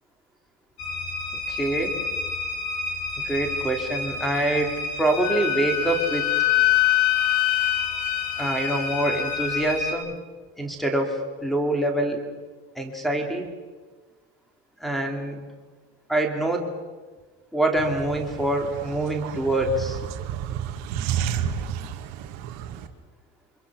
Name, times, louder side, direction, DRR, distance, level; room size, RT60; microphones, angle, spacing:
sound 1, 0.8-9.9, left 2 dB, 65° left, 6.8 m, -31 dB
voice 1, 1.5-1.9 3.2-6.3 8.4-10.2 10.6-12.2 12.8-13.5 14.8-15.4 16.1-16.7 17.5-20.0, right 1 dB, ahead, 3 dB, 2.7 m, -25 dB
Wind instrument woodwind instrument, 5.2-9.6, left 19 dB, 45° left, 0.8 m, -24 dB
sound 2, 17.8-22.9, right 9 dB, 50° right, 2.0 m, -31 dB
28.0 x 25.0 x 6.2 m, 1.3 s
cardioid pair, 180°, 34 cm